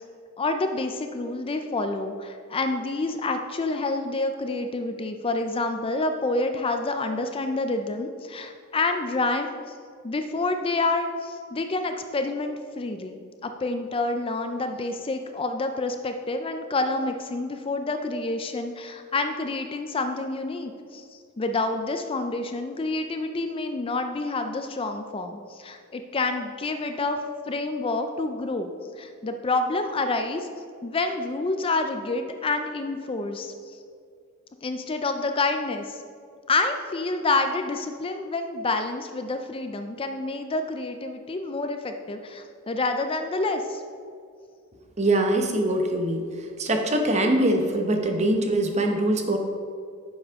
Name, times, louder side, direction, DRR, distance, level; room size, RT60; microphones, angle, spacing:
voice 1, 0.4-9.5 10.0-27.2 27.5-28.7 29.0-30.5 30.8-33.8 34.6-36.0 36.5-43.8, left 3 dB, 25° left, 6 dB, 0.4 m, -28 dB
voice 2, 45.0-46.2 46.6-49.4, right 1 dB, 30° right, 3 dB, 0.9 m, -23 dB
10.0 x 7.3 x 3.6 m, 2.3 s
head